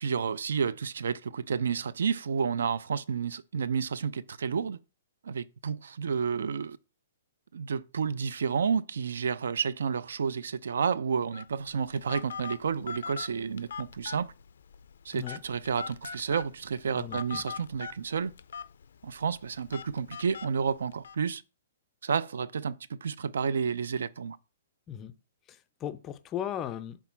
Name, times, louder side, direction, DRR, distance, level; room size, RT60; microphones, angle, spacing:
voice 1, 0.0-4.8 5.2-6.8 7.5-14.3 15.1-18.3 19.0-21.4 22.0-24.4, right 6 dB, 75° right, 0.5 m, -30 dB
Telephone, 11.3-21.1, left 6 dB, 70° left, 0.5 m, -43 dB
voice 2, 16.9-17.4 24.9-25.1 25.5-27.0, left 10 dB, 15° left, 0.4 m, -37 dB
6.2 x 3.3 x 5.8 m
hypercardioid pair, 175°, 0 cm